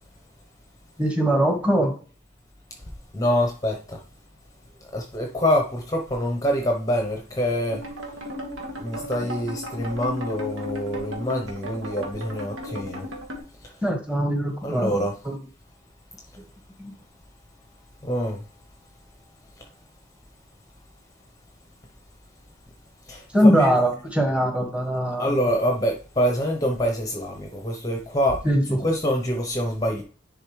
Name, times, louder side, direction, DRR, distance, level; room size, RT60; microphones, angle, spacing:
voice 1, 1.0-1.9 13.8-15.4 16.8-16.9 23.3-25.5 28.4-28.6, equal, 5° right, 1.4 m, -22 dB
voice 2, 3.1-4.0 4.9-7.8 8.8-13.1 14.6-15.1 18.0-18.4 23.1-23.7 25.2-28.4 28.8-30.0, equal, 15° left, 0.8 m, -25 dB
sound 1, 7.7-13.4, left 1 dB, 75° right, 1.6 m, -35 dB
10.5 x 3.8 x 3.2 m
head